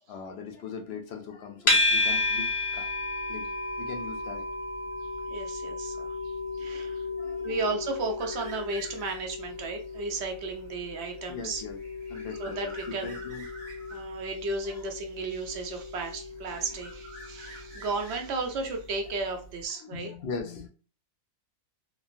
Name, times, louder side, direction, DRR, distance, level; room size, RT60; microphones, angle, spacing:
voice 1, 0.1-2.9 3.3-3.5 3.8-4.4 6.5-7.6 11.3-11.8 12.1-12.6 12.9-13.5 14.6-14.9 17.7-17.8 19.7-20.7, left 5 dB, 65° left, 3 dB, 0.8 m, -40 dB
sound 1, 1.7-18.9, left 2 dB, 30° left, 0.8 m, -33 dB
voice 2, 5.3-7.1 7.4-11.6 12.4-13.1 13.9-20.1, right 3 dB, 70° right, 4 dB, 0.9 m, -34 dB
sound 2, 8.2-9.5 9.9-14.2 15.2-16.0 16.2-18.7, right 1 dB, 85° right, 1.2 m, -48 dB
3.1 x 2.2 x 2.4 m, 0.39 s
omnidirectional pair, 1.2 m